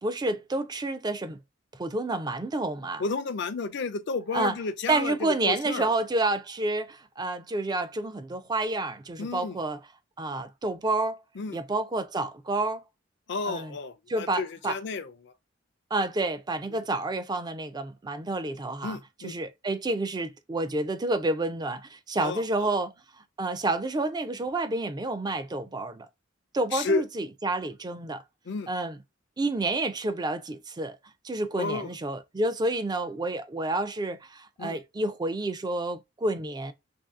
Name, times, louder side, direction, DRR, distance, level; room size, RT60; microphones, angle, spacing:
voice 1, 0.0-1.4 1.8-3.0 4.3-4.6 4.9-9.8 10.2-11.2 11.5-12.8 13.5-13.7 14.1-14.8 15.9-19.0 19.2-22.9 23.4-26.1 26.5-28.2 28.7-29.0 29.4-31.0 31.2-36.7, right 2 dB, 20° right, 0.4 m, -29 dB
voice 2, 3.0-5.9 9.2-9.6 11.4-11.6 13.3-15.3 16.7-16.8 18.8-19.4 22.2-22.7 26.7-27.0 28.5-28.7 31.6-31.9 34.6-34.8, left 3 dB, 65° left, 0.5 m, -32 dB
3.1 x 2.7 x 3.5 m
head